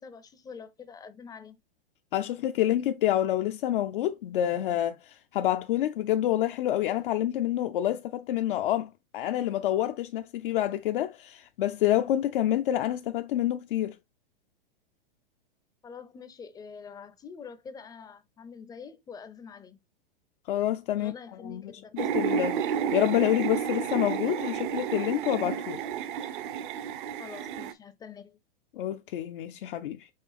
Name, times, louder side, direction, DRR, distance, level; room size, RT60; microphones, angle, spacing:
voice 1, 0.0-1.6 15.8-19.8 20.9-22.0 27.2-28.4, left 6 dB, 15° left, 0.5 m, -45 dB
voice 2, 2.1-14.0 20.5-21.1 21.4-25.8 28.7-30.1, left 12 dB, 65° left, 0.5 m, -28 dB
sound 1, 22.0-27.7, right 8 dB, 60° right, 0.7 m, -31 dB
5.5 x 2.9 x 3.3 m
hypercardioid pair, 110°, 29 cm